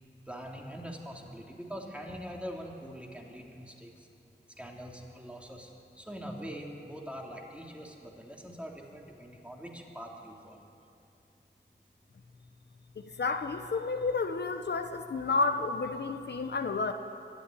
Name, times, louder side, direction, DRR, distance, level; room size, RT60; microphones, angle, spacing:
voice 1, 0.3-3.9 4.6-5.7 6.0-10.7, equal, 5° right, -1 dB, 3.3 m, -43 dB
voice 2, 13.2-16.9, left 3 dB, 65° left, 7 dB, 1.1 m, -30 dB
24.5 x 12.5 x 10.0 m, 2.6 s
wide cardioid pair, 85°, 19 cm